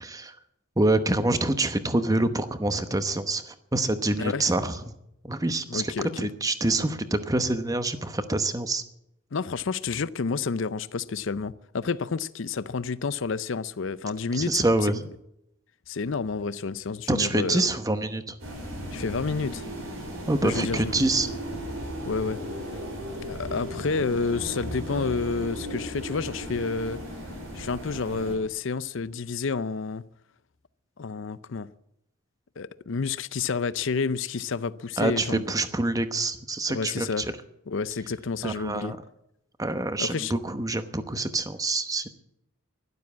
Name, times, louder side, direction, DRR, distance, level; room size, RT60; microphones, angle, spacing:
voice 1, 0.0-0.4 0.8-4.9 5.2-8.8 14.3-15.0 17.1-18.3 20.3-21.3 35.0-37.2 38.4-39.0 39.6-42.1, right 2 dB, 15° right, 0.9 m, -26 dB
voice 2, 4.2-4.5 5.7-6.1 9.3-15.0 15.9-17.7 18.9-19.6 20.4-21.2 22.0-22.4 23.2-27.0 27.5-30.0 31.0-31.7 32.6-35.4 36.7-37.3 37.7-39.0 40.0-40.3, left 4 dB, 60° left, 0.6 m, -30 dB
sound 1, 18.4-28.4, equal, 90° right, 5.8 m, -36 dB
12.0 x 12.0 x 8.5 m
head